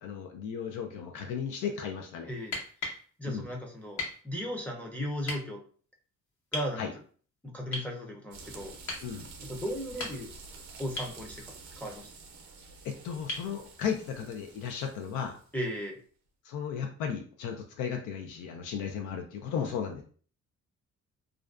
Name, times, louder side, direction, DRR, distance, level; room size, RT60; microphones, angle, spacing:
voice 1, 0.0-2.3 3.3-3.5 6.8-6.9 9.0-9.3 12.8-15.4 16.4-20.0, left 7 dB, 85° left, 3 dB, 0.5 m, -35 dB
sound 1, 2.4-3.0 4.0-4.2 5.2-5.4 6.5-6.7 7.7-7.9 8.9-9.1 9.8-10.4 11.0-11.2 13.3-13.5 15.4-15.5, left 2 dB, 70° left, 1.0 m, -36 dB
voice 2, 3.2-5.6 6.5-6.8 7.4-8.7 9.4-10.3 10.8-11.4 11.8-12.1 15.5-16.0, equal, 5° left, 0 dB, 0.5 m, -36 dB
sound 2, 8.3-15.7, right 4 dB, 70° right, 0.6 m, -49 dB
2.4 x 2.2 x 2.3 m, 0.43 s
cardioid pair, 90°, 30 cm